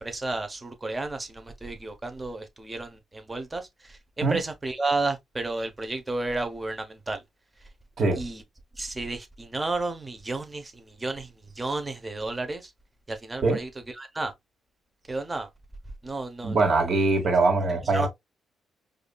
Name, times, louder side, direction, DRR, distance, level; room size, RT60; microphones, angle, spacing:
voice 1, 0.0-7.2 8.1-8.4 8.8-12.7 13.1-13.7 14.0-14.3 15.1-15.5 16.0-16.7 17.9-18.1, right 2 dB, 20° right, 0.9 m, -32 dB
voice 2, 16.4-18.1, right 3 dB, 55° right, 2.0 m, -22 dB
4.9 x 2.6 x 2.3 m
cardioid pair, 85°, 0 cm